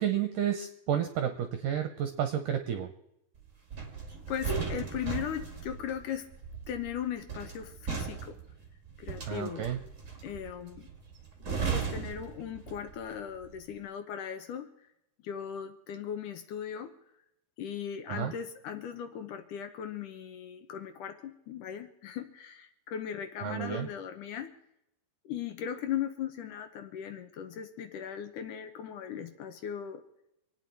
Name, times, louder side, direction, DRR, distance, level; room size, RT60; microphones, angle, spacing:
voice 1, 0.0-2.9 9.3-9.8 18.1-18.3 23.4-23.9, right 9 dB, 70° right, 6 dB, 2.1 m, -31 dB
sound 1, 3.7-13.0 13.3-13.6, right 6 dB, 30° right, 1.4 m, -37 dB
voice 2, 4.3-6.3 6.7-8.4 9.0-9.6 10.2-10.9 11.7-14.7 15.2-16.9 17.6-24.5 25.3-30.0, left 9 dB, 70° left, 8 dB, 2.0 m, -38 dB
26.5 x 9.5 x 4.6 m, 0.83 s
omnidirectional pair, 4.7 m